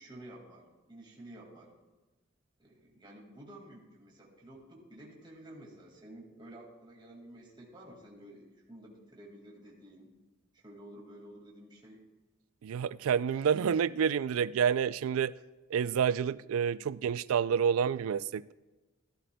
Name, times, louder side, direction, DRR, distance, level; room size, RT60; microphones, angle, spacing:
voice 1, 0.0-1.7 2.6-10.1 10.5-12.0, right 1 dB, 20° right, 2.1 m, -51 dB
voice 2, 12.6-15.3 15.7-18.5, right 7 dB, 80° right, 0.3 m, -29 dB
16.5 x 11.5 x 2.2 m
head